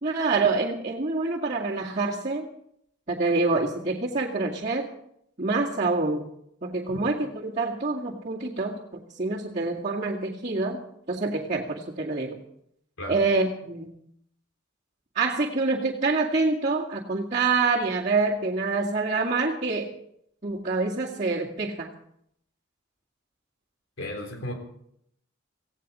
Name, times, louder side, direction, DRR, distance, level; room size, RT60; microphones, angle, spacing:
voice 1, 0.0-2.5 3.1-4.9 5.4-6.3 6.6-10.8 11.1-12.4 13.1-13.9 15.1-19.9 20.4-21.9, right 3 dB, 35° right, -7 dB, 2.2 m, -26 dB
voice 2, 24.0-24.5, left 1 dB, 75° left, 3 dB, 3.8 m, -34 dB
17.5 x 17.0 x 4.3 m, 0.71 s
head